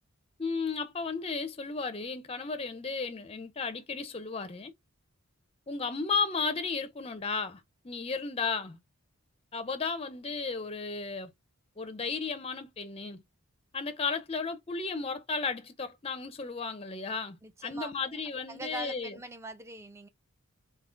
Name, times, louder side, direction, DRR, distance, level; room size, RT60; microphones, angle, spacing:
voice 1, 0.4-4.7 5.7-8.8 9.5-11.3 11.8-13.2 13.7-19.2, left 4 dB, 25° left, 0.6 m, -34 dB
voice 2, 17.4-18.2 18.5-20.1, right 2 dB, 10° right, 0.6 m, -43 dB
3.7 x 2.8 x 3.7 m
head